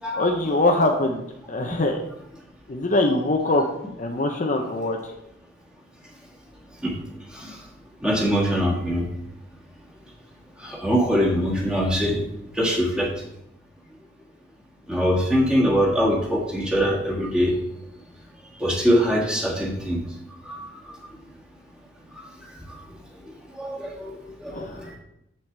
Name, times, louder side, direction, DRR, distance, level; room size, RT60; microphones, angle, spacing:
voice 1, 0.1-2.0 2.7-3.6 4.0-5.1 24.5-24.9, left 2 dB, 40° left, 3 dB, 0.6 m, -23 dB
voice 2, 8.0-9.1 10.6-12.2 12.5-13.1 14.9-17.5 18.6-20.0 20.4-20.7 23.6-24.9, equal, 5° right, -4 dB, 1.7 m, -23 dB
7.6 x 7.2 x 3.3 m, 0.81 s
head